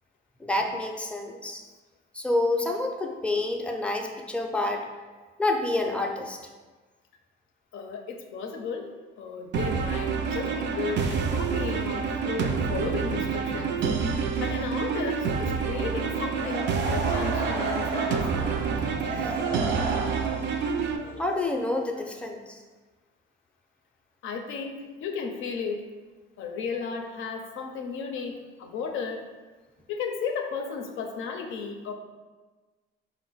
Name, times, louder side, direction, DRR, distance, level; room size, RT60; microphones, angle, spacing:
voice 1, 0.4-1.6 2.1-4.9 5.4-6.4 19.2-19.4 21.2-22.6, left 2 dB, 5° left, 3 dB, 0.4 m, -28 dB
voice 2, 7.7-8.9 9.2-13.8 14.4-18.2 24.2-25.9 26.4-29.2 29.9-31.9, left 5 dB, 85° left, 4 dB, 0.5 m, -34 dB
sound 1, 9.5-21.0, right 6 dB, 65° right, 0.4 m, -28 dB
Laughter / Crowd, 16.4-22.3, right 2 dB, 90° right, 0.9 m, -33 dB
4.1 x 2.1 x 3.8 m, 1.3 s
cardioid pair, 90°, 20 cm